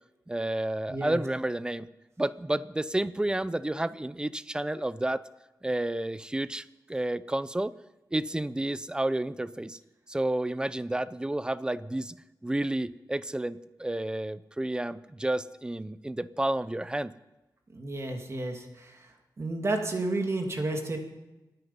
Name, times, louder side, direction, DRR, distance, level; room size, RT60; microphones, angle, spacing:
voice 1, 0.3-1.9 2.2-5.2 5.6-7.7 8.1-9.8 10.1-12.2 12.4-17.1, right 1 dB, 10° right, 16 dB, 0.5 m, -30 dB
voice 2, 0.9-1.2 17.7-19.1 19.4-21.0, right 2 dB, 40° right, 3 dB, 2.2 m, -31 dB
26.5 x 9.6 x 5.5 m, 1.0 s
wide cardioid pair, 120°, 7 cm